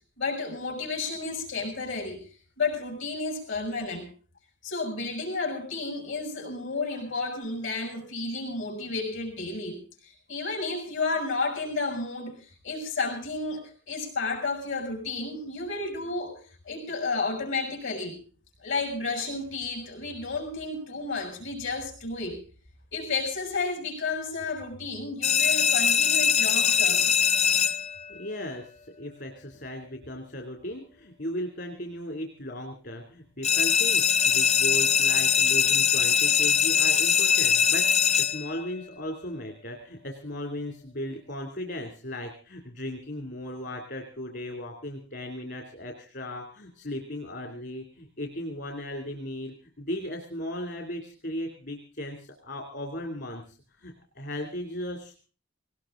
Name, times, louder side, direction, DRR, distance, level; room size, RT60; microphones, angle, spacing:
voice 1, 0.2-2.2 2.6-4.1 4.6-16.4 16.7-18.2 18.6-22.4 22.9-27.1, left 3 dB, 75° left, 1 dB, 7.0 m, -32 dB
sound 1, 25.2-28.1 33.4-38.6, left 7 dB, 30° left, 0.8 m, -22 dB
voice 2, 28.1-37.9 38.2-55.2, left 1 dB, 55° left, 2 dB, 2.9 m, -37 dB
19.0 x 19.0 x 3.8 m, 0.39 s
head